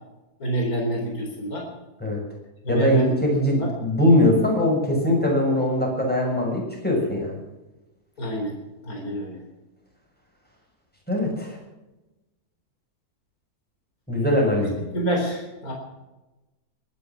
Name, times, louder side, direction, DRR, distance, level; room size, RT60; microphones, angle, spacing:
voice 1, 0.4-1.6 2.6-3.1 3.5-3.7 8.2-8.5 8.8-9.4 14.9-15.7, right 1 dB, 70° left, 0 dB, 4.5 m, -27 dB
voice 2, 2.7-7.4 11.1-11.6 14.1-14.7, left 1 dB, 5° left, -1 dB, 6.4 m, -21 dB
21.5 x 11.0 x 6.1 m, 1.1 s
omnidirectional pair, 1.6 m